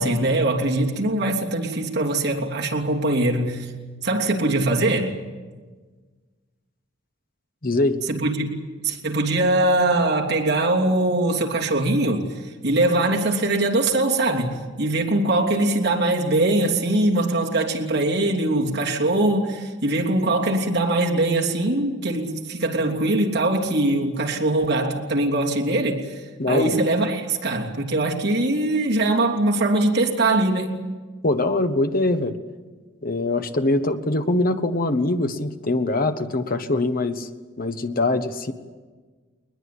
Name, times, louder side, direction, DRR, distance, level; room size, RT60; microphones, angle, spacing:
voice 1, 0.0-3.7 4.0-5.2 8.1-30.8, right 2 dB, 60° right, -1 dB, 3.1 m, -22 dB
voice 2, 7.6-8.0 26.4-26.8 31.2-32.3 33.0-37.3 37.6-38.5, left 2 dB, 45° left, 8 dB, 1.3 m, -23 dB
21.0 x 21.0 x 8.6 m, 1.4 s
head